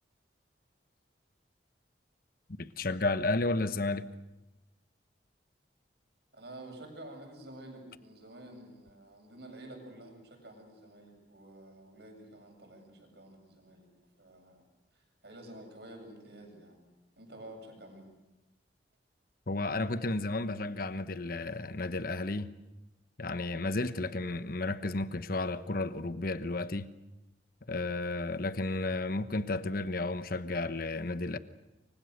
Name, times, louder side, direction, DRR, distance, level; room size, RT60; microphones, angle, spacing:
voice 1, 2.6-4.0 19.5-22.5 23.2-26.9 27.7-31.4, left 2 dB, 55° left, 1.1 m, -32 dB
voice 2, 6.3-14.7 14.9-16.8 17.2-18.1, right 1 dB, 65° right, 7.8 m, -50 dB
29.0 x 24.5 x 6.7 m
head